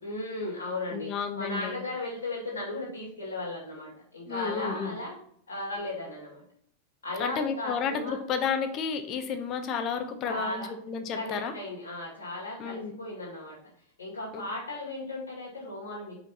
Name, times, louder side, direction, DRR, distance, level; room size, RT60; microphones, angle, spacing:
voice 1, 0.0-5.2 5.5-6.4 7.0-8.2 10.2-10.7 11.1-13.6 14.0-16.3, left 2 dB, 70° left, -6 dB, 2.3 m, -36 dB
voice 2, 0.9-1.8 4.3-5.0 7.2-11.5 12.6-12.9, left 6 dB, 35° left, 8 dB, 0.9 m, -31 dB
5.0 x 5.0 x 4.2 m, 0.67 s
figure-of-eight pair, 90°, 0 cm